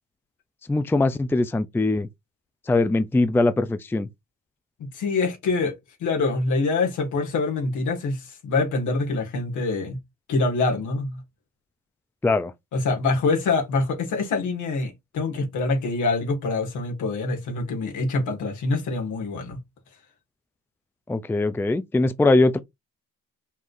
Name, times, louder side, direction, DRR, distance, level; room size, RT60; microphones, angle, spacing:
voice 1, 0.7-2.1 2.7-4.1 12.2-12.5 21.1-22.6, left 2 dB, 5° left, 0.4 m, -21 dB
voice 2, 4.8-10.0 10.3-11.2 12.7-19.6, left 3 dB, 75° left, 1.9 m, -25 dB
5.6 x 3.2 x 2.6 m
cardioid pair, 90°, 30 cm